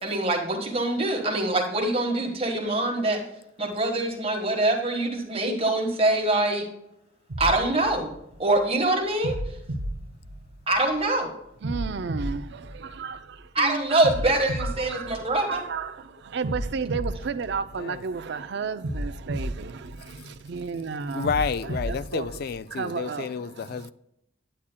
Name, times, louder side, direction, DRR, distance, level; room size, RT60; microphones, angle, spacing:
voice 1, 0.0-3.2 3.6-6.6 7.4-8.1 8.4-9.4 10.7-11.3 13.5-15.6, right 2 dB, 30° right, 1.4 m, -24 dB
sound 1, 7.3-8.6 9.2-10.9 11.6-13.4 14.0-15.8 16.4-18.2 18.8-20.5 21.2-22.6, right 1 dB, 75° right, 0.8 m, -34 dB
voice 2, 11.6-13.5 13.9-14.1 14.6-21.3 21.6-22.3 22.7-23.9, right 5 dB, 55° right, 0.4 m, -33 dB
voice 3, 21.1-23.9, left 5 dB, 50° left, 0.3 m, -30 dB
10.0 x 8.5 x 2.2 m
head